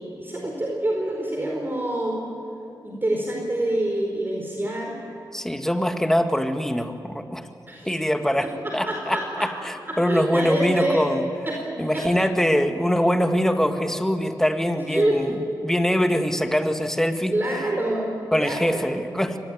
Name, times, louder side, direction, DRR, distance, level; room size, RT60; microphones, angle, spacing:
voice 1, 0.0-2.2 2.8-4.9 7.7-8.0 8.4-8.5 8.9-9.5 9.9-11.0 11.5-12.1 14.9-15.2 17.3-18.1 18.4-18.8, right 1 dB, 25° right, -1 dB, 4.8 m, -26 dB
voice 2, 5.3-7.5 7.9-11.2 11.8-15.3 15.6-17.3 18.3-19.4, equal, 5° left, 6 dB, 1.9 m, -23 dB
24.5 x 19.5 x 9.4 m, 2.6 s
cardioid pair, 65°, 8 cm